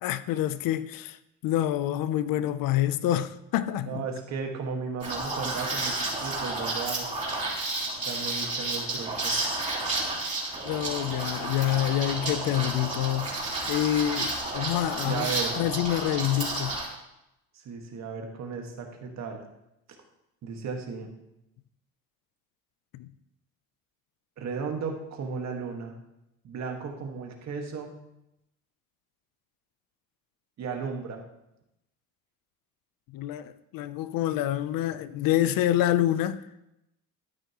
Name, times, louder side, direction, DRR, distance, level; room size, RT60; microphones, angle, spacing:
voice 1, 0.0-1.2 1.4-4.0 10.7-13.4 13.7-15.3 15.6-16.8 22.9-23.1 33.1-36.4, left 13 dB, 75° left, 0.6 m, -27 dB
voice 2, 3.8-7.1 8.0-9.3 15.0-15.5 17.7-19.4 20.4-21.1 24.4-26.0 26.4-28.0 30.6-31.2, right 5 dB, 50° right, 1.7 m, -35 dB
Liquid, 5.0-16.9, right 2 dB, 20° right, 3.4 m, -31 dB
13.0 x 9.1 x 3.0 m
cardioid pair, 130°, 34 cm